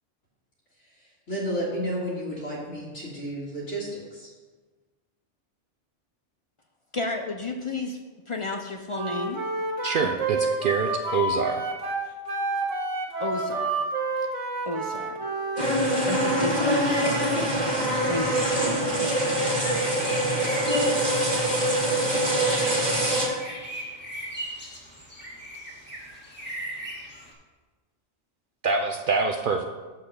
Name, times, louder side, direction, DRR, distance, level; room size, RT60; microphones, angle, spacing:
voice 1, 0.8-4.3, equal, 85° left, -9 dB, 2.2 m, -32 dB
voice 2, 6.9-8.0 8.3-9.4 13.2-13.8 14.7-15.3 15.6-15.8 16.1-18.6 19.0-19.4 19.6-19.9, left 3 dB, 55° left, 4 dB, 0.3 m, -32 dB
Wind instrument woodwind instrument, 8.9-15.7, right 3 dB, 85° right, 1.3 m, -29 dB
voice 3, 9.8-11.6 28.6-29.6, right 4 dB, 60° right, 5 dB, 0.6 m, -25 dB
sound 1, 15.6-23.3, right 1 dB, 35° right, 1.8 m, -24 dB
sound 2, 16.9-27.3, right 1 dB, 10° left, 1.7 m, -40 dB
6.7 x 5.7 x 6.5 m, 1.3 s
omnidirectional pair, 1.2 m